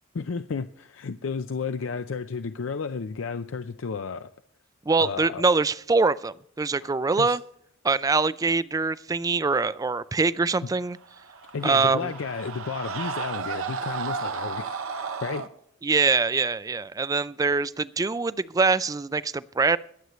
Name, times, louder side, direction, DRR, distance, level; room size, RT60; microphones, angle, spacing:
voice 1, 0.1-4.3 5.0-5.4 6.8-6.9 7.2-7.4 11.5-15.5, left 5 dB, 70° left, 10 dB, 0.5 m, -32 dB
voice 2, 4.9-7.4 7.8-11.0 11.6-12.1 15.8-19.8, right 4 dB, 15° right, 17 dB, 0.3 m, -24 dB
Screaming, 11.0-15.5, right 5 dB, 85° right, 0.9 m, -33 dB
22.0 x 8.0 x 3.1 m, 0.73 s
head